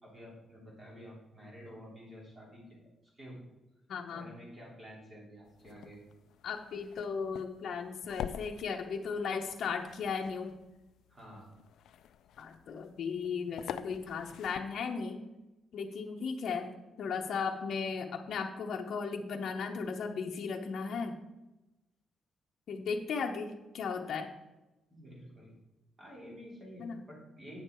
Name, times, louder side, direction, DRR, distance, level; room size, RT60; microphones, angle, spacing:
voice 1, 0.0-3.4 4.1-6.0 11.1-11.5 24.9-25.5 26.0-27.6, equal, 20° right, -3 dB, 3.1 m, -50 dB
voice 2, 3.9-4.3 6.4-10.5 12.4-15.2 15.7-16.7 17.0-21.2 22.7-24.3 26.8-27.0, left 5 dB, 55° left, 2 dB, 0.9 m, -36 dB
sound 1, 5.4-15.0, left 9 dB, 80° left, 0.4 m, -47 dB
8.9 x 6.5 x 4.5 m, 1.0 s
cardioid pair, 160°, 0 cm